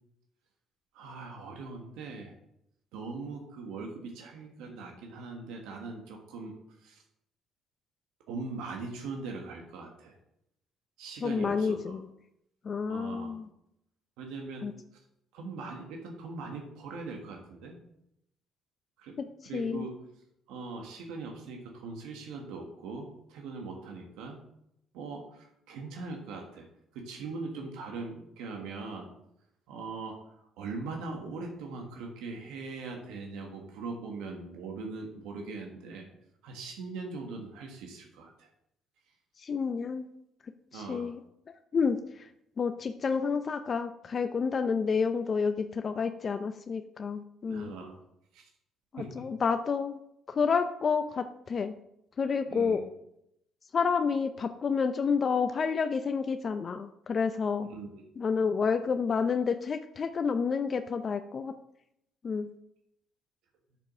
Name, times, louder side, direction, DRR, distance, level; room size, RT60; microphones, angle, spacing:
voice 1, 0.9-2.3 2.9-6.5 6.8-7.0 8.3-10.2 11.0-12.0 12.9-13.3 14.2-14.7 15.3-17.8 19.0-19.2 19.4-20.0 20.5-24.4 24.9-26.6 26.9-29.1 29.7-30.2 30.6-36.0 36.4-38.5 40.7-41.1 47.5-48.0 48.3-48.5 49.0-49.1 52.5-52.9 57.7-58.0, right 3 dB, 85° right, 2 dB, 1.4 m, -41 dB
voice 2, 11.2-12.1 12.6-13.5 14.6-14.7 19.5-19.9 39.4-40.1 40.7-41.2 41.7-42.3 42.6-47.7 48.9-50.0 50.3-51.8 52.2-52.8 53.7-57.7 58.2-61.5 62.2-62.5, left 5 dB, 40° left, 9 dB, 0.5 m, -29 dB
6.8 x 5.9 x 6.0 m, 0.79 s
cardioid pair, 85°, 0 cm